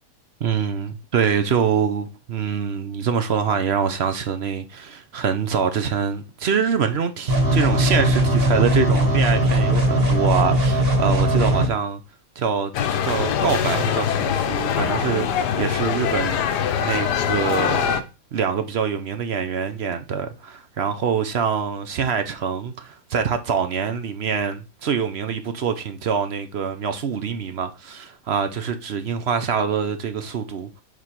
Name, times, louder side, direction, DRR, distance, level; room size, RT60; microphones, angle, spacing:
voice 1, 0.4-12.0 12.4-18.0 18.3-30.8, right 6 dB, 55° right, 0.7 m, -25 dB
sound 1, 7.3-11.7, equal, 35° right, 1.7 m, -19 dB
sound 2, 12.7-18.0, left 8 dB, 85° left, 1.3 m, -23 dB
7.2 x 3.2 x 5.7 m
omnidirectional pair, 1.7 m